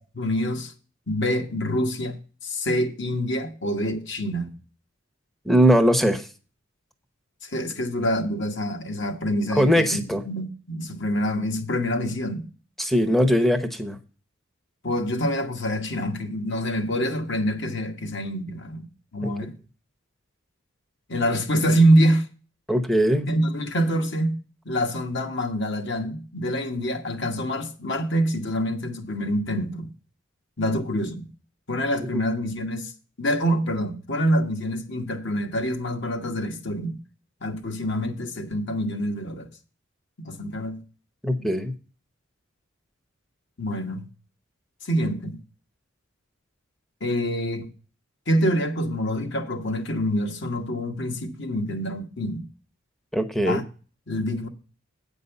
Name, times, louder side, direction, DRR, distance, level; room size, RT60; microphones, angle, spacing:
voice 1, 0.1-0.7 1.1-4.5 7.4-12.4 14.8-18.8 19.1-19.5 21.1-22.3 23.3-24.4 24.6-29.9 30.6-31.3 31.7-32.9 33.2-37.0 37.4-39.5 40.2-40.8 43.6-44.1 44.8-45.4 47.0-47.7 48.3-52.5 53.5-53.6 54.1-54.5, equal, 60° left, 1.4 m, -26 dB
voice 2, 5.4-6.3 9.6-10.2 12.8-14.0 19.2-19.3 22.7-23.3 32.0-32.2 41.2-41.7 53.1-53.6, equal, ahead, 0.8 m, -20 dB
8.7 x 5.4 x 6.9 m
head